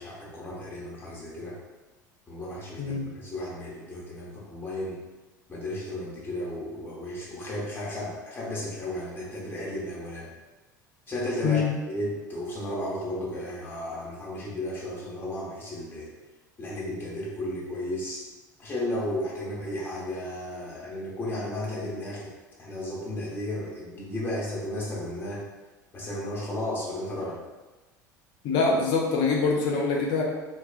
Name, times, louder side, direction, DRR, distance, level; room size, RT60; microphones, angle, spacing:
voice 1, 0.0-1.6 2.3-4.9 5.5-10.3 11.1-16.1 16.6-18.2 18.6-22.3 22.6-25.4 25.9-27.4, left 1 dB, 20° left, -6 dB, 0.8 m, -34 dB
voice 2, 28.4-30.2, left 4 dB, 50° left, -1 dB, 0.5 m, -24 dB
2.3 x 2.2 x 2.4 m, 1.2 s
figure-of-eight pair, 70°, 10 cm